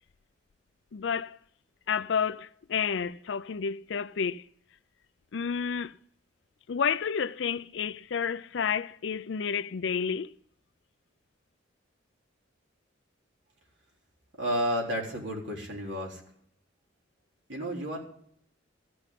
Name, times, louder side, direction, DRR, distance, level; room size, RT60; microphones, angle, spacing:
voice 1, 0.9-1.4 1.9-4.4 5.3-6.0 6.7-10.3, left 6 dB, 65° left, 0.4 m, -30 dB
voice 2, 14.4-16.2 17.5-18.0, equal, 65° right, 3.7 m, -31 dB
14.5 x 6.2 x 9.8 m
head